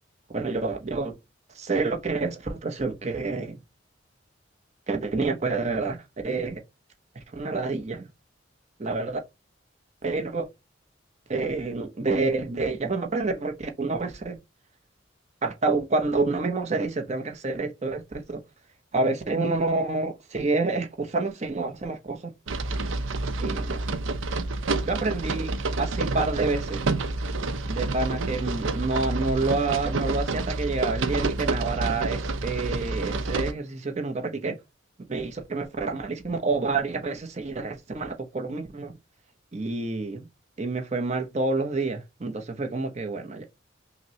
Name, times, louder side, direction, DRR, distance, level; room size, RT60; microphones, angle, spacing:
voice 1, 0.3-1.2 1.5-3.6 4.9-6.6 7.3-8.1 8.8-9.2 10.0-10.5 11.3-14.4 15.4-18.4 18.9-22.3 23.4-23.7 24.9-25.5 25.8-26.8 27.6-34.6 35.1-38.9 39.5-40.3 40.6-43.4, right 3 dB, 35° right, 0.7 m, -28 dB
sound 1, 22.5-33.5, right 3 dB, 85° right, 0.5 m, -28 dB
5.7 x 2.1 x 2.7 m
head